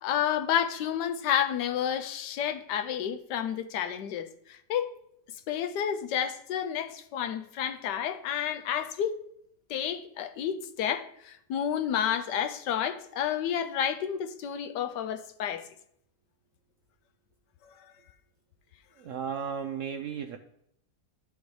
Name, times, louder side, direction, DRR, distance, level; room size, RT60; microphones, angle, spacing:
voice 1, 0.0-4.9 5.5-9.2 9.7-15.6 17.6-17.7, left 9 dB, 85° left, 1.3 m, -30 dB
voice 2, 18.9-20.4, right 7 dB, 70° right, 0.7 m, -34 dB
13.0 x 5.2 x 3.2 m
omnidirectional pair, 1.8 m